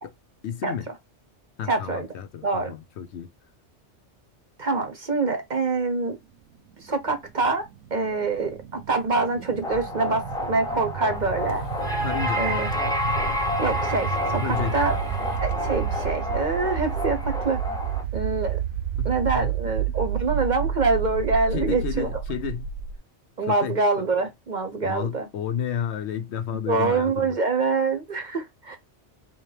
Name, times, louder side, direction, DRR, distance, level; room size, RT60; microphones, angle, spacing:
voice 1, 0.4-0.9 1.6-3.3 12.0-12.5 14.3-14.8 19.0-19.5 21.5-22.7 23.4-23.8 24.8-27.4, left 7 dB, 70° left, 0.9 m, -31 dB
voice 2, 1.7-2.1 2.4-2.7 4.6-6.2 6.8-7.6 7.9-11.7 12.4-12.7 13.6-15.0 15.4-17.6 18.1-18.6 19.0-22.1 23.4-25.3 26.7-28.8, right 3 dB, 45° right, 0.8 m, -25 dB
sound 1, 7.1-23.0, right 9 dB, 80° right, 1.0 m, -31 dB
sound 2, 9.6-18.0, left 1 dB, 5° left, 0.7 m, -29 dB
sound 3, 11.2-16.0, left 5 dB, 90° left, 1.0 m, -38 dB
3.9 x 2.9 x 3.3 m
omnidirectional pair, 1.2 m